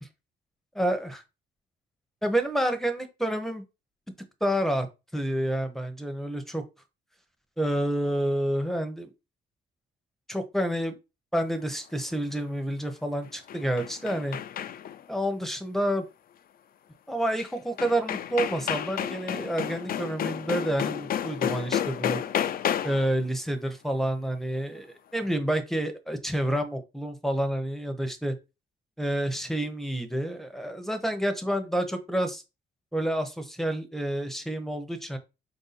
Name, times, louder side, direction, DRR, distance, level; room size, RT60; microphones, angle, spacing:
voice 1, 0.8-1.2 2.2-3.6 4.4-4.9 5.1-6.6 7.6-9.1 10.3-11.0 11.3-14.4 15.1-16.0 17.1-22.2 22.8-24.9 25.1-28.3 29.0-32.4 32.9-35.2, right 1 dB, ahead, 8 dB, 0.8 m, -29 dB
sound 1, 13.3-15.0 17.4-17.5 17.8-23.1, left 10 dB, 50° left, 0.4 m, -31 dB
4.5 x 2.7 x 4.1 m, 0.27 s
cardioid pair, 90°, 20 cm